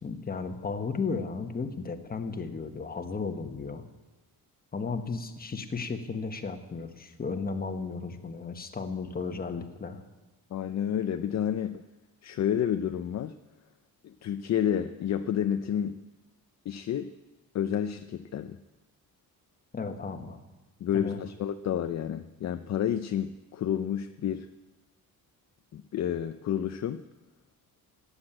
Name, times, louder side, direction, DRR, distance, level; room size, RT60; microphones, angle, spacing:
voice 1, 0.0-3.9 4.7-10.0 19.7-20.4 20.9-21.2, left 4 dB, 25° left, 6 dB, 1.4 m, -34 dB
voice 2, 10.5-11.8 12.2-13.4 14.0-16.0 16.7-17.1 17.5-18.6 20.8-24.5 25.7-27.0, left 9 dB, 50° left, 9 dB, 0.6 m, -30 dB
16.0 x 9.8 x 8.8 m, 1.1 s
cardioid pair, 150°, 36 cm